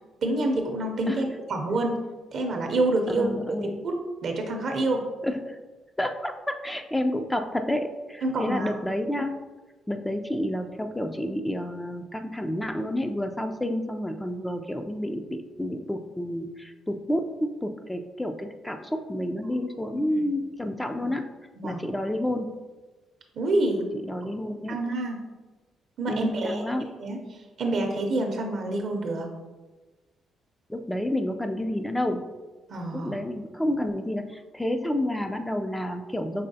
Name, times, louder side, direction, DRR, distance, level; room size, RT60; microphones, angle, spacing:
voice 1, 0.2-2.0 2.3-3.3 3.6-3.9 4.2-5.0 8.2-8.7 20.1-20.2 21.6-21.8 23.3-23.8 24.7-25.2 26.0-27.2 27.6-29.3 32.7-33.1, right 2 dB, 60° right, 3 dB, 0.6 m, -27 dB
voice 2, 3.1-3.8 5.2-5.6 6.0-9.4 9.9-21.3 21.6-22.5 23.9-24.8 26.1-26.9 30.7-32.2 32.9-36.5, left 1 dB, 10° left, 6 dB, 0.3 m, -30 dB
5.4 x 3.2 x 2.7 m, 1.2 s
cardioid pair, 90°, 0 cm